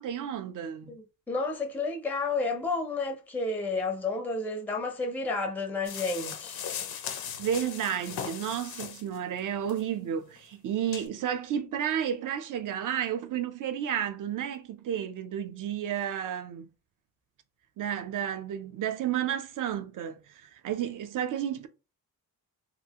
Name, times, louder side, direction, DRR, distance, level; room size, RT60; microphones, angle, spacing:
voice 1, 0.0-1.0 7.4-16.7 17.8-21.7, right 9 dB, 60° right, 0.5 m, -32 dB
voice 2, 0.9-6.7, left 3 dB, 5° left, 0.4 m, -31 dB
sound 1, 5.8-9.2 9.7-9.8 10.4-10.5 10.9-11.1, left 8 dB, 75° left, 0.6 m, -38 dB
2.8 x 2.4 x 2.8 m
cardioid pair, 120°, 37 cm